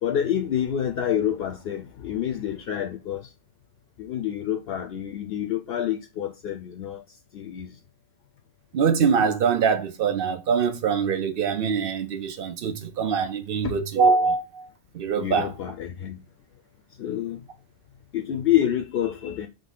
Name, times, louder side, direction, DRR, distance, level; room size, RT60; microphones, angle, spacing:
voice 1, 0.0-3.3 4.0-7.0 7.3-7.8 13.6-13.7 15.1-16.2 17.0-17.4 18.1-19.5, left 10 dB, 70° left, 0.7 m, -27 dB
voice 2, 8.7-14.7 14.9-15.5, right 5 dB, 65° right, 0.8 m, -23 dB
3.8 x 3.5 x 3.7 m
omnidirectional pair, 1.1 m